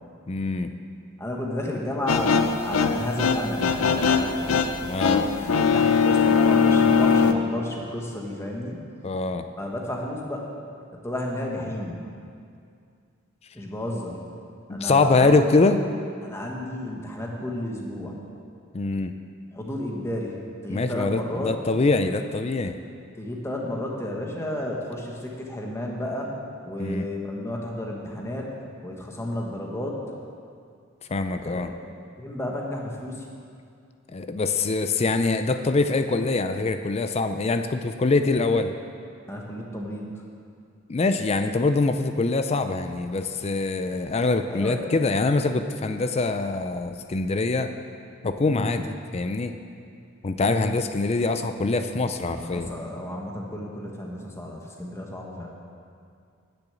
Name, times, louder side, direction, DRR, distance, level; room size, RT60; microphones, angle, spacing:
voice 1, 0.3-0.7 4.8-5.3 9.0-9.4 14.7-15.8 18.7-19.1 20.7-22.8 26.8-27.1 31.1-31.7 34.1-38.7 40.9-47.7 48.2-49.5 50.2-52.7, left 3 dB, 30° left, 8 dB, 0.4 m, -24 dB
voice 2, 1.2-4.7 5.4-8.8 9.6-10.5 11.0-12.0 13.5-14.3 14.7-15.5 16.2-18.2 19.5-20.4 20.6-21.5 23.2-26.3 26.6-28.5 28.8-30.0 31.4-31.7 32.2-33.2 39.3-40.1 44.5-44.8 48.5-48.8 50.4-50.6 52.3-55.5, left 1 dB, 15° left, -1 dB, 1.4 m, -32 dB
sound 1, 2.1-7.3, left 6 dB, 80° left, 0.6 m, -21 dB
10.0 x 6.8 x 8.3 m, 2.3 s
head